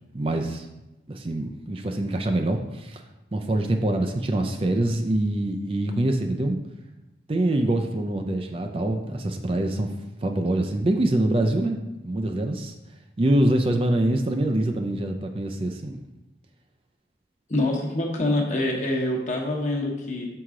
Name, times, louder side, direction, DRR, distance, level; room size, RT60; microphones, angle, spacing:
voice 1, 0.1-0.7 1.1-3.0 3.3-6.6 7.3-9.9 10.2-12.7 13.2-16.0, right 1 dB, 30° right, 5 dB, 0.4 m, -25 dB
voice 2, 17.5-20.3, left 1 dB, 40° left, -1 dB, 1.2 m, -25 dB
7.0 x 4.7 x 3.7 m, 0.98 s
head